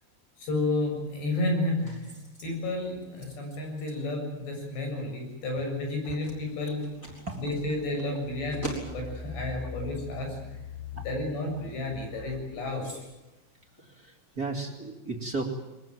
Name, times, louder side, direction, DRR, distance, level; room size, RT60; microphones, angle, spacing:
voice 1, 0.4-2.1 2.4-6.8 7.3-10.4 11.1-13.1, left 2 dB, 70° left, 2 dB, 9.2 m, -31 dB
sound 1, 0.9-14.7, equal, 15° left, 6.4 m, -48 dB
Engine, 6.9-12.8, left 4 dB, 50° left, 4.2 m, -43 dB
voice 2, 13.8-15.4, right 3 dB, 25° right, 3 dB, 2.4 m, -35 dB
23.0 x 21.5 x 9.3 m, 1.0 s
omnidirectional pair, 5.1 m